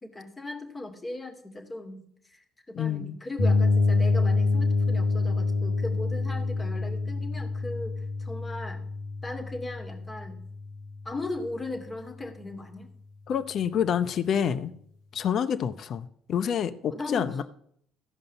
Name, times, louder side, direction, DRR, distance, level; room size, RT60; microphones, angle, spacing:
voice 1, 0.0-8.8 9.2-10.4 11.0-12.9 16.9-17.4, left 2 dB, 25° left, 2.5 m, -38 dB
voice 2, 2.7-3.2 13.3-14.7 15.1-17.4, left 8 dB, 55° left, 0.6 m, -28 dB
sound 1, 3.4-11.1, left 3 dB, 80° left, 1.7 m, -26 dB
14.5 x 5.3 x 6.8 m
hypercardioid pair, 60°, 0 cm